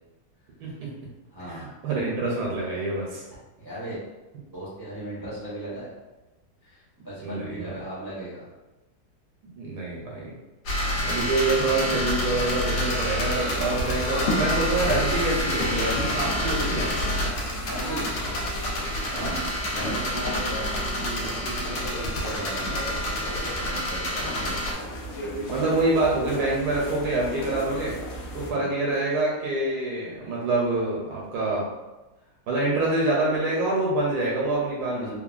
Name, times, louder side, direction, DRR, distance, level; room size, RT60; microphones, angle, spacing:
voice 1, 0.6-0.9 1.4-3.2 7.2-7.8 9.5-10.4 11.0-16.9 19.1-19.4 25.5-28.0 28.3-31.6 32.5-35.1, right 2 dB, 80° right, -4 dB, 1.2 m, -26 dB
voice 2, 1.3-1.7 3.6-4.0 4.5-5.9 6.6-8.4 10.7-11.0 17.3-18.2 19.1-24.6 28.5-28.7 34.9-35.1, right 1 dB, 30° right, -10 dB, 0.4 m, -37 dB
sound 1, 10.7-24.7, left 1 dB, 85° left, 1.2 m, -28 dB
sound 2, 13.4-28.5, equal, 65° left, 0.7 m, -34 dB
3.1 x 2.1 x 2.4 m, 1.1 s
omnidirectional pair, 1.6 m